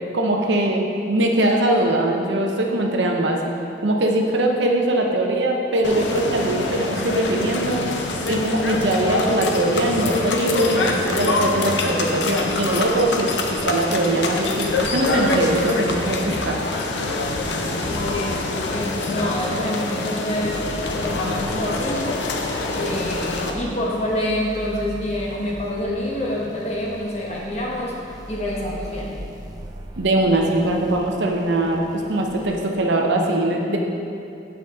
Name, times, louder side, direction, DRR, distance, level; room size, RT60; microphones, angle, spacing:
voice 1, 0.1-3.4 3.8-7.9 8.3-16.6 30.0-33.8, right 1 dB, 80° right, 1 dB, 0.8 m, -21 dB
sound 1, 5.8-23.5, left 2 dB, 75° left, 0.6 m, -25 dB
voice 2, 17.8-22.1 22.7-27.9 28.3-29.1, left 1 dB, 35° left, -3 dB, 1.1 m, -27 dB
sound 2, 20.5-32.4, right 1 dB, 20° right, 0.5 m, -39 dB
7.8 x 5.7 x 3.7 m, 2.6 s
head